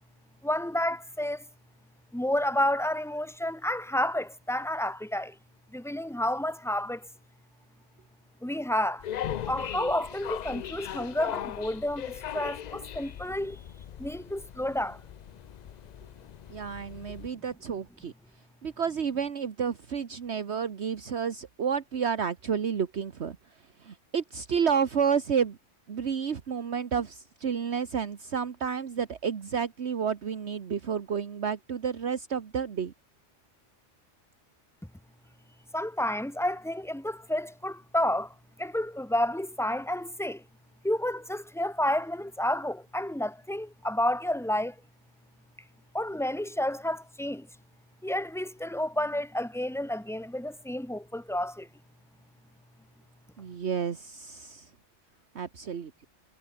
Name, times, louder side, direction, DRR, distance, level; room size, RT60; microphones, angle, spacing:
voice 1, 0.4-1.4 2.1-5.4 5.7-7.1 8.4-9.0 9.5-13.6 14.0-15.0 35.7-40.4 40.8-44.7 45.9-47.5 48.0-51.7, left 1 dB, ahead, 1.1 m, -30 dB
sound 1, 9.0-17.3, left 10 dB, 75° left, 0.4 m, -39 dB
voice 2, 16.5-18.1 18.6-23.4 23.8-25.6 25.9-32.9 53.4-54.7 55.3-55.9, right 7 dB, 60° right, 1.5 m, -30 dB
omnidirectional pair, 1.3 m